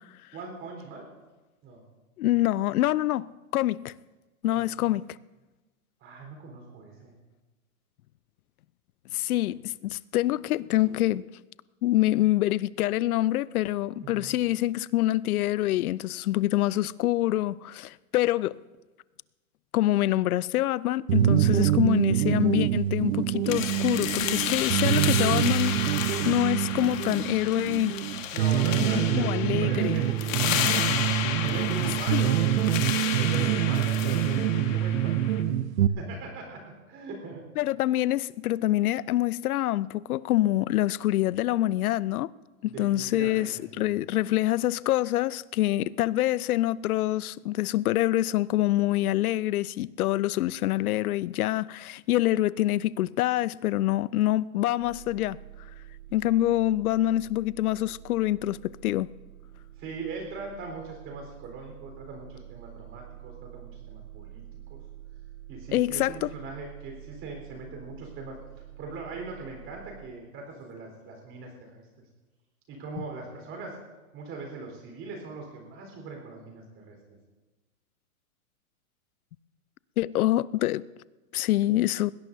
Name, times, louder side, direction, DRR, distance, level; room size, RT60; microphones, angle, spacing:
voice 1, 0.3-1.1 1.6-1.8 4.5-5.0 6.0-7.1 14.0-14.4 28.3-30.7 31.4-35.7 36.0-37.5 42.6-43.9 59.8-64.8 65.5-68.4 68.8-71.9 72.7-73.8 74.1-77.2, right 3 dB, 30° right, 4.1 m, -40 dB
voice 2, 2.2-3.9 4.4-5.0 9.1-11.3 11.8-18.6 19.7-25.8 26.2-27.9 29.0-30.0 32.1-32.3 37.6-42.3 42.6-55.4 56.1-59.1 65.7-66.3 80.0-80.8 81.3-82.1, left 15 dB, 80° left, 0.5 m, -26 dB
sound 1, 21.1-35.9, right 11 dB, 65° right, 0.9 m, -25 dB
sound 2, 23.5-35.4, left 10 dB, 60° left, 1.7 m, -32 dB
sound 3, 54.8-70.1, right 13 dB, 80° right, 1.8 m, -47 dB
21.5 x 17.0 x 2.7 m
hypercardioid pair, 140°, 44 cm